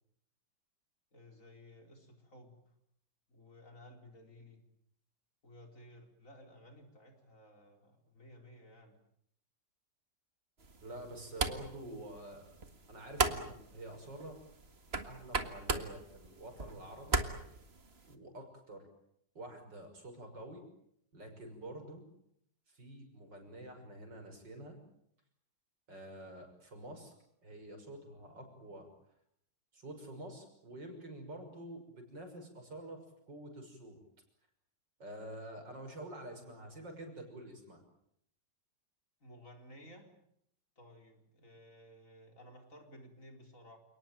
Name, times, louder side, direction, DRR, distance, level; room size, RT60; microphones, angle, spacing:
voice 1, 1.1-2.6 3.3-4.6 5.4-9.0 39.2-40.1 40.8-43.8, equal, 45° left, 4 dB, 4.7 m, -56 dB
sound 1, 10.6-18.1, right 3 dB, 35° right, 2.0 m, -38 dB
voice 2, 10.8-12.5 12.9-14.4 15.0-17.2 17.5-17.6 18.1-18.9 19.4-20.6 21.1-22.0 22.7-24.8 25.9-27.1 27.4-28.9 29.7-33.0 33.3-34.0 35.0-37.8, right 1 dB, 80° right, 5 dB, 6.8 m, -48 dB
29.0 x 19.0 x 9.1 m, 0.73 s
omnidirectional pair, 1.9 m